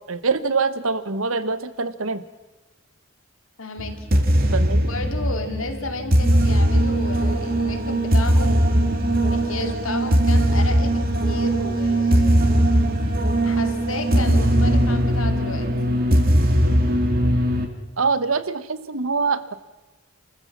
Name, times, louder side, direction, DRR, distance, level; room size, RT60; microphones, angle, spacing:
voice 1, 0.1-2.2 4.5-4.9 18.0-19.5, right 4 dB, 80° right, 13 dB, 1.2 m, -24 dB
voice 2, 3.6-4.1 4.9-8.5 9.2-12.5 13.4-15.7, left 2 dB, 75° left, 7 dB, 2.5 m, -32 dB
sound 1, 3.8-17.7, right 1 dB, 45° right, 2.1 m, -19 dB
28.5 x 14.5 x 7.4 m, 1.1 s
head